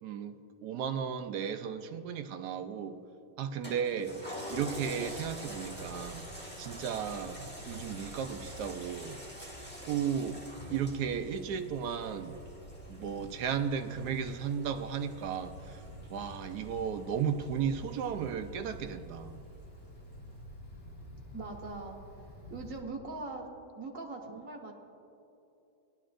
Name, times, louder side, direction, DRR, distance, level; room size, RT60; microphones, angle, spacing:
voice 1, 0.0-3.0 3.4-4.2 4.5-6.3 6.6-9.2 9.8-10.4 10.7-12.4 12.9-15.8 16.1-19.4, right 7 dB, 75° right, 8 dB, 1.1 m, -35 dB
Toilet flush, 3.6-18.4 18.9-19.0, equal, 5° left, 1.6 m, -47 dB
Wind, 4.4-22.8, equal, 40° left, 1.8 m, -49 dB
voice 2, 21.3-22.0 22.5-23.5 23.7-24.7, right 3 dB, 50° right, 1 dB, 1.6 m, -41 dB
18.0 x 11.5 x 2.5 m, 2.8 s
omnidirectional pair, 1.8 m